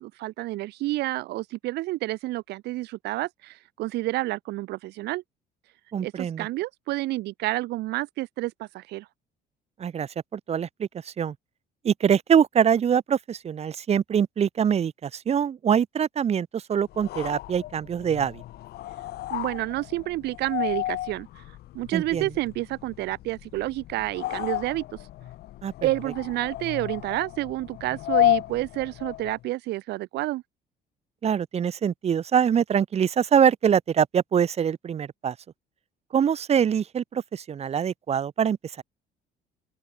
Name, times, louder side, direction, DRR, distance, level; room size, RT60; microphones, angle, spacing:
voice 1, 0.0-5.2 6.0-9.1 19.3-21.3 21.7-24.8 25.8-30.4, right 18 dB, 80° right, 1.3 m, -29 dB
voice 2, 5.9-6.5 9.8-11.3 11.8-18.4 21.9-22.3 25.6-25.7 31.2-35.3 36.1-38.8, right 8 dB, 40° right, 1.0 m, -24 dB
sound 1, 16.9-29.5, left 15 dB, 70° left, 1.1 m, -32 dB
open air
cardioid pair, 110°, 17 cm